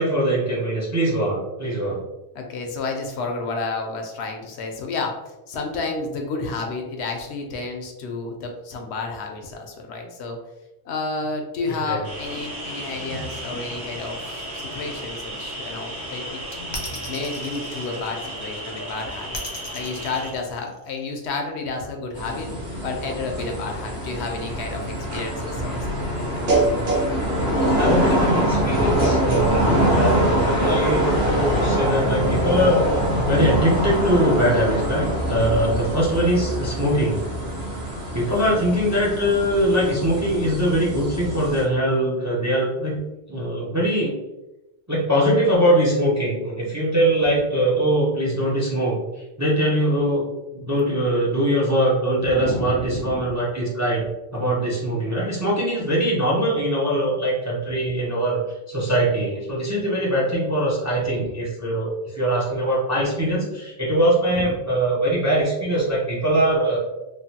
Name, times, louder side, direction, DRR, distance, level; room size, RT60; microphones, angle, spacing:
voice 1, 0.0-2.0 11.7-12.0 27.7-37.2 38.1-43.0 43.3-44.1 44.9-49.0 49.4-50.3 50.5-54.1 54.3-58.4 58.7-66.8, right 1 dB, 25° right, -4 dB, 0.4 m, -22 dB
voice 2, 2.3-10.4 10.8-14.2 14.5-16.4 17.1-19.4 19.7-26.5 38.2-38.5 52.2-53.3 58.8-58.9 61.2-61.3 64.3-64.6, left 3 dB, 80° left, 3 dB, 0.9 m, -31 dB
sound 1, 12.0-20.3, right 1 dB, 45° right, 1.2 m, -34 dB
sound 2, 16.7-18.5 19.3-21.1, left 2 dB, 35° left, 0.4 m, -35 dB
sound 3, 22.2-41.6, right 1 dB, 70° right, 1.0 m, -23 dB
3.1 x 2.2 x 2.7 m, 0.99 s
omnidirectional pair, 1.1 m